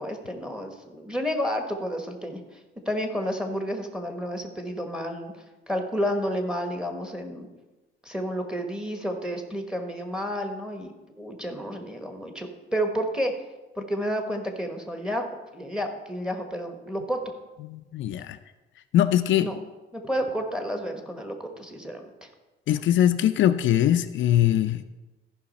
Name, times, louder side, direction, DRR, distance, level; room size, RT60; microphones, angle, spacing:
voice 1, 0.0-2.6 2.9-5.3 5.7-7.5 8.0-13.3 13.8-15.3 15.5-17.2 19.4-19.6 19.9-22.3, equal, 5° right, 4 dB, 1.2 m, -30 dB
voice 2, 17.6-18.4 18.9-19.5 22.7-24.8, left 11 dB, 70° left, 9 dB, 0.5 m, -22 dB
14.0 x 5.7 x 4.1 m, 1.1 s
cardioid pair, 135°, 20 cm